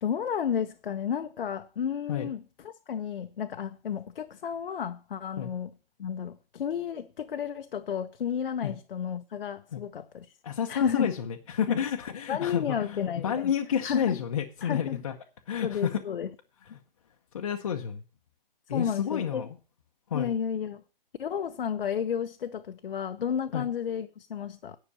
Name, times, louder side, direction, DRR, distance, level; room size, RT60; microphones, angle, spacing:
voice 1, 0.0-10.3 10.7-11.1 11.7-11.8 12.3-13.5 13.8-14.2 14.6-15.0 15.6-16.3 16.7-16.8 18.7-19.5 20.1-20.8 21.2-24.8, left 8 dB, 70° left, 0.8 m, -32 dB
voice 2, 10.4-15.1 15.5-16.0 17.3-18.0 18.7-19.5 20.1-20.3 23.5-23.6, left 8 dB, 35° left, 0.8 m, -30 dB
10.0 x 5.8 x 6.9 m
hypercardioid pair, 170°, 29 cm